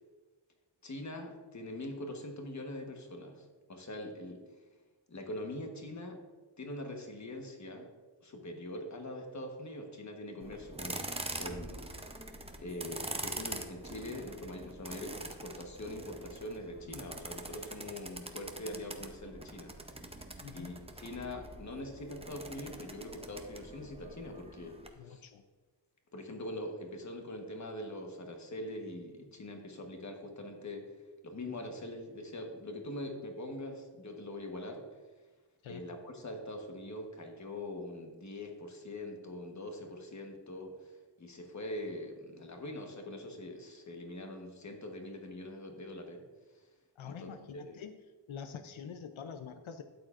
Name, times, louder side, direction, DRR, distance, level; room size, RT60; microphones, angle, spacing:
voice 1, 0.8-4.4 5.1-6.2 6.6-7.9 8.2-11.0 11.4-11.9 12.6-19.8 20.5-24.8 25.0-25.2 26.1-30.9 31.2-34.8 35.7-46.2 46.5-46.6 47.0-47.8, left 1 dB, 35° left, 3 dB, 1.2 m, -43 dB
sound 1, 10.4-24.9, right 2 dB, 15° right, 0.6 m, -44 dB
voice 2, 20.4-20.8 25.0-25.4 35.6-35.8 47.0-48.0 48.3-49.8, left 7 dB, 85° left, 8 dB, 0.6 m, -46 dB
12.5 x 9.0 x 2.5 m, 1.3 s
wide cardioid pair, 160°, 47 cm